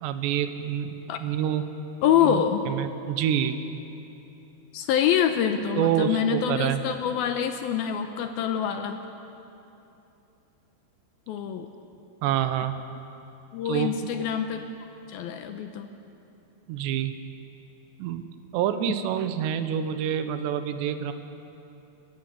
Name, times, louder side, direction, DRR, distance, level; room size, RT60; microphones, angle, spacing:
voice 1, 0.0-1.6 2.2-3.6 5.8-6.8 12.2-12.8 13.7-14.0 16.7-17.1 18.0-18.3 18.5-21.1, right 10 dB, 85° right, 9 dB, 3.2 m, -27 dB
voice 2, 2.0-2.7 4.7-9.0 11.3-11.7 13.5-14.6 15.1-15.9, left 9 dB, 75° left, 7 dB, 2.4 m, -25 dB
29.5 x 14.5 x 8.2 m, 2.9 s
omnidirectional pair, 4.9 m